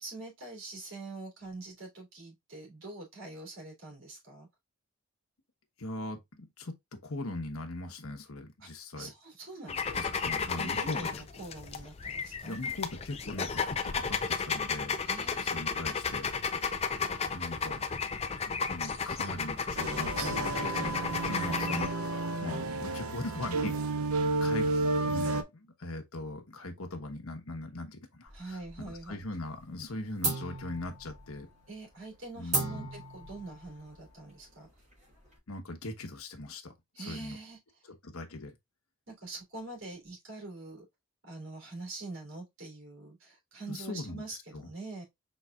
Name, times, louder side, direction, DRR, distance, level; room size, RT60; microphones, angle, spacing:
voice 1, 0.0-4.5 8.6-10.1 10.5-12.6 15.0-15.6 28.3-29.2 31.7-34.7 36.9-37.6 39.1-40.8 41.2-45.0, right 3 dB, 70° right, 3.1 m, -44 dB
voice 2, 5.8-9.1 9.9-11.1 12.4-15.0 15.4-16.3 17.3-17.8 18.4-23.9 24.4-24.7 25.1-31.5 32.3-32.9 35.5-37.4 37.8-38.6 43.7-44.2 44.5-44.7, left 2 dB, 85° left, 1.1 m, -40 dB
sound 1, 9.7-21.9, left 5 dB, 30° left, 0.4 m, -33 dB
sound 2, 19.8-25.4, right 2 dB, 85° right, 0.6 m, -31 dB
sound 3, 28.3-29.2 29.5-29.9 30.2-35.4, right 2 dB, 35° right, 3.5 m, -37 dB
5.5 x 4.0 x 2.4 m
head